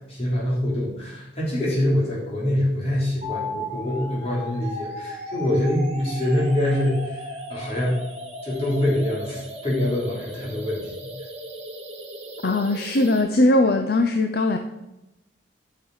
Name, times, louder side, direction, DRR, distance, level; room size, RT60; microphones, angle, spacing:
voice 1, 0.1-8.0 8.4-11.1, left 1 dB, 30° left, -7 dB, 3.4 m, -25 dB
sound 1, 3.2-13.2, equal, 35° right, 1.6 m, -36 dB
voice 2, 12.4-14.6, left 2 dB, 55° left, 6 dB, 0.5 m, -20 dB
8.8 x 5.8 x 4.8 m, 0.95 s
head